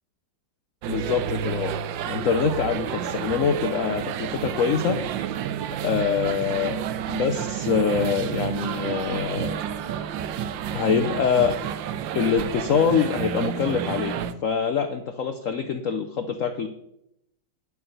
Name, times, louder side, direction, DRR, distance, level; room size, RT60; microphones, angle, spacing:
sound 1, 0.8-14.3, right 9 dB, 85° right, 1.4 m, -30 dB
voice 1, 0.9-1.8 2.0-5.0 5.8-9.6 10.7-11.6 12.1-16.7, left 6 dB, 60° left, 6 dB, 0.9 m, -24 dB
9.8 x 7.9 x 6.6 m, 0.81 s
omnidirectional pair, 2.0 m